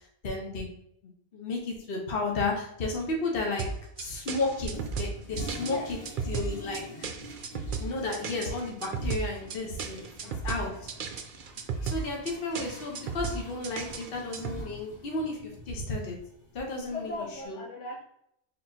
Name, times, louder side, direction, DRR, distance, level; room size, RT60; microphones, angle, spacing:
voice 1, 0.2-0.7 1.3-3.7 4.0-6.0 6.3-7.1 7.8-10.7 11.8-16.2 16.5-17.1 17.5-17.6, left 2 dB, 55° left, 0 dB, 1.1 m, -33 dB
sound 1, 3.6-14.6, right 5 dB, 55° right, 0.6 m, -35 dB
Toilet flush, 4.7-17.5, equal, 25° left, 1.1 m, -47 dB
voice 2, 10.0-10.9 16.9-18.0, left 2 dB, 80° left, -1 dB, 1.3 m, -40 dB
4.6 x 3.8 x 2.7 m, 0.73 s
omnidirectional pair, 1.2 m